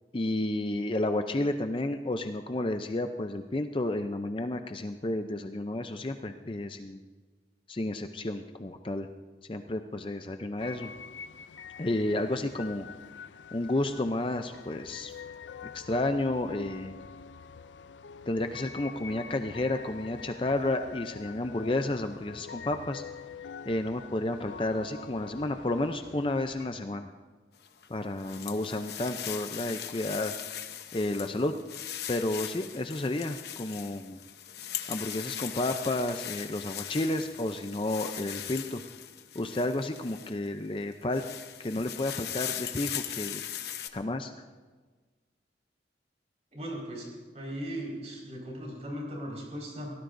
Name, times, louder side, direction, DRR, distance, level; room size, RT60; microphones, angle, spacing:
voice 1, 0.1-7.0 7.7-9.1 9.5-10.9 11.8-12.9 13.5-15.1 15.7-16.9 18.3-23.0 23.7-27.1 27.9-30.3 30.9-31.5 32.1-34.2 34.9-38.8 39.3-41.2 41.6-43.4 43.9-44.3, left 2 dB, 30° left, 7 dB, 0.5 m, -31 dB
sound 1, 10.6-26.7, left 6 dB, 90° left, 0.4 m, -46 dB
sound 2, 27.6-40.5 40.9-43.9, left 10 dB, 65° left, 0.8 m, -39 dB
voice 2, 46.5-47.1 47.3-49.9, equal, 35° right, -2 dB, 4.8 m, -38 dB
23.5 x 17.5 x 2.6 m, 1.4 s
head